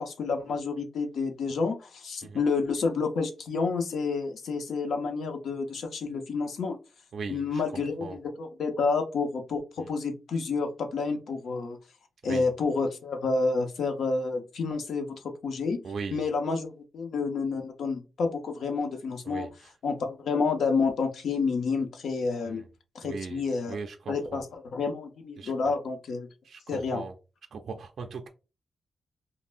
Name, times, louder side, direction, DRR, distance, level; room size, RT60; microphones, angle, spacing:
voice 1, 0.0-6.8 7.3-9.6 9.9-11.8 12.2-15.1 15.4-15.8 16.1-19.5 19.8-22.6 22.9-23.8 24.1-26.3 26.7-27.0, left 4 dB, 85° left, 5 dB, 0.7 m, -29 dB
voice 2, 7.1-8.2 9.8-9.9 12.2-12.5 15.8-16.2 19.2-19.7 22.4-22.7 23.0-24.4 25.4-25.7 26.4-27.1 27.5-28.3, right 5 dB, 60° right, 4 dB, 0.4 m, -39 dB
5.3 x 2.0 x 2.5 m, 0.31 s
wide cardioid pair, 160°, 0 cm